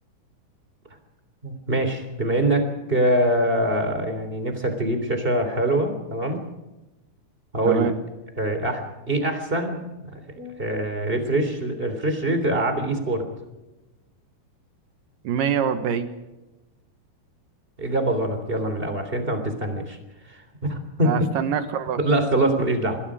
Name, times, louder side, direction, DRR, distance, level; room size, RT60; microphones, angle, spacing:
voice 1, 1.4-6.4 7.5-7.9 8.4-13.3 17.8-20.0 20.3-21.1 22.0-23.0, right 1 dB, 15° right, 7 dB, 3.2 m, -24 dB
voice 2, 15.2-16.1 21.0-22.0, right 8 dB, 65° right, 10 dB, 2.7 m, -24 dB
26.5 x 21.0 x 5.1 m, 1.0 s
omnidirectional pair, 4.6 m